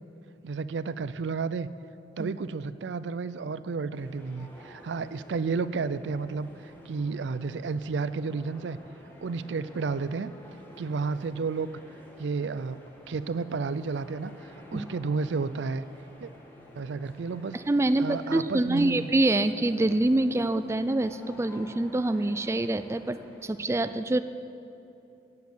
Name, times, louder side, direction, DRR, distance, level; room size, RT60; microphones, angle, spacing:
voice 1, 0.4-1.7 2.2-6.5 6.9-8.8 9.2-10.3 10.8-11.8 12.2-12.8 13.1-14.3 14.7-15.9 16.2-16.3 16.7-17.6 18.0-19.1, right 4 dB, 85° right, 15 dB, 0.4 m, -31 dB
sound 1, 3.9-23.5, equal, 10° left, 1.8 m, -51 dB
voice 2, 17.5-24.2, right 2 dB, 15° right, 11 dB, 0.4 m, -26 dB
15.0 x 8.4 x 8.3 m, 2.8 s
head